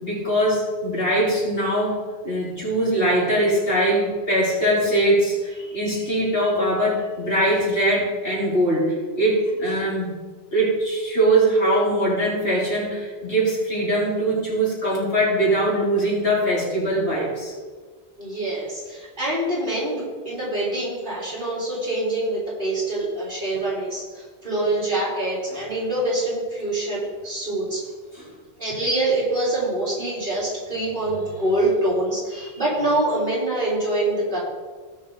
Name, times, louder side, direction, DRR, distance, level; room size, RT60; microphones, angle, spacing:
voice 1, 0.0-10.2 10.5-17.5 25.5-25.7 28.1-28.3 32.3-32.5, right 1 dB, 70° left, -6 dB, 4.2 m, -22 dB
voice 2, 18.2-24.0 24.4-27.8 28.6-34.4, right 1 dB, 50° right, -7 dB, 4.1 m, -25 dB
17.5 x 6.3 x 4.0 m, 1.4 s
omnidirectional pair, 1.1 m